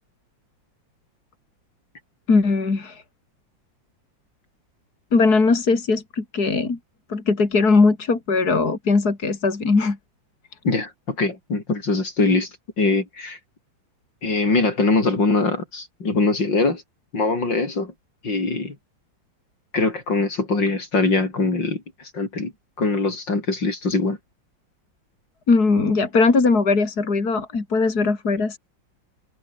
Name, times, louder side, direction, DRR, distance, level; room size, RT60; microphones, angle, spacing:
voice 1, 2.3-3.0 5.1-6.8 7.1-10.0 25.5-28.6, left 4 dB, 55° left, 3.9 m, -19 dB
voice 2, 10.6-12.5 12.8-13.4 14.2-16.8 17.1-17.9 18.2-18.8 19.7-22.5 22.8-24.2, left 3 dB, 70° left, 5.7 m, -22 dB
omnidirectional pair, 2.0 m